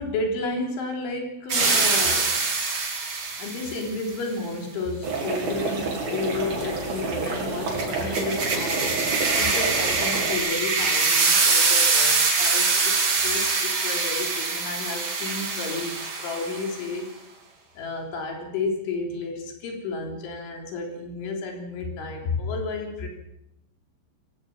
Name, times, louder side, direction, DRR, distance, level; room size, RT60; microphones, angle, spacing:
voice 1, 0.0-2.4 3.4-9.0 9.4-17.1 17.8-23.2, left 3 dB, 90° left, 2 dB, 5.9 m, -31 dB
sound 1, 1.5-3.8 7.8-16.7, right 4 dB, 35° right, 3.3 m, -23 dB
sound 2, 5.0-10.4, right 3 dB, 55° right, 5.9 m, -29 dB
23.0 x 16.5 x 7.2 m, 0.79 s
omnidirectional pair, 5.3 m